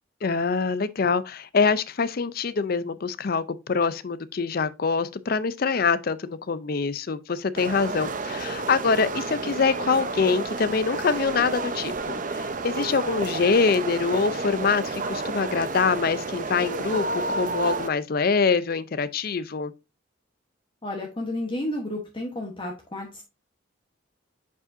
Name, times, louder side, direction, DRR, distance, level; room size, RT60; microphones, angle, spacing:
voice 1, 0.2-19.7, left 5 dB, 45° left, 0.5 m, -25 dB
sound 1, 7.6-17.9, right 3 dB, 40° right, 0.7 m, -31 dB
voice 2, 20.8-23.2, left 1 dB, 25° left, 1.1 m, -31 dB
8.1 x 4.9 x 2.6 m
head